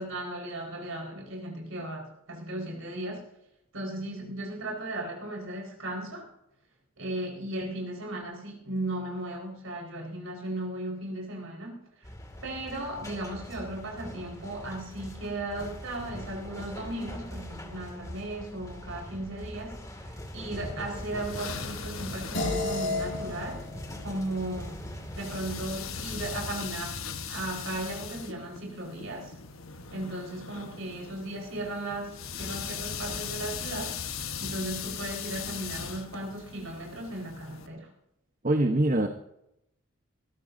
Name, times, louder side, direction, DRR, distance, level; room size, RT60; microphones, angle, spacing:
voice 1, 0.0-3.2 3.7-6.3 7.0-11.8 12.4-23.7 24.0-24.8 25.1-27.0 27.3-29.3 29.9-37.9, right 1 dB, 80° right, 0 dB, 4.7 m, -36 dB
sound 1, 12.0-26.6, equal, 15° left, 2.3 m, -42 dB
sound 2, 20.9-37.7, left 6 dB, 85° left, 1.3 m, -40 dB
sound 3, 22.3-27.1, left 2 dB, 65° left, 5.6 m, -35 dB
voice 2, 38.4-39.1, right 1 dB, 40° right, 5 dB, 1.0 m, -23 dB
21.0 x 14.0 x 2.7 m, 0.80 s
head